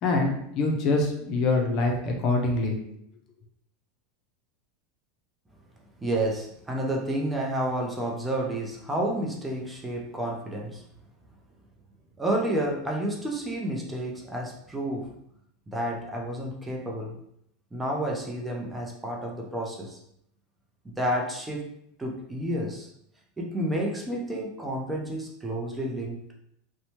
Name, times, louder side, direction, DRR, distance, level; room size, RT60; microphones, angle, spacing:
voice 1, 0.0-2.8, left 3 dB, 50° left, 2 dB, 0.6 m, -25 dB
voice 2, 6.0-10.8 12.2-15.1 15.7-17.2 17.7-20.0 21.0-21.7 22.0-22.9 23.4-26.3, right 1 dB, 10° right, -1 dB, 0.6 m, -30 dB
2.7 x 2.1 x 2.8 m, 0.74 s
hypercardioid pair, 100°, 0 cm